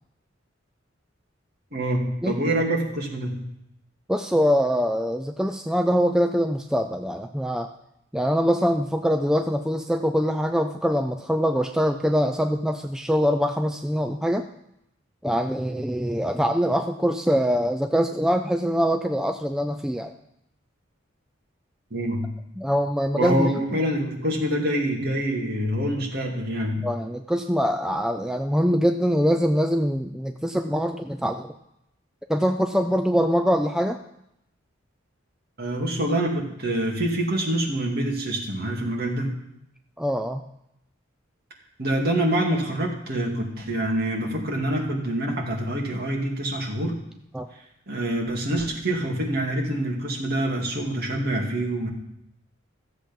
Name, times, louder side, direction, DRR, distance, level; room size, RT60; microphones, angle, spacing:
voice 1, 1.7-3.4 21.9-22.3 23.1-26.9 35.6-39.3 41.8-46.9 47.9-51.9, right 1 dB, 50° right, -1 dB, 2.4 m, -26 dB
voice 2, 4.1-7.7 8.1-14.5 15.2-20.1 22.6-23.8 26.8-31.5 32.3-34.0 40.0-40.4 47.3-47.5, equal, 5° right, 5 dB, 0.4 m, -23 dB
14.0 x 7.5 x 5.3 m, 0.80 s
head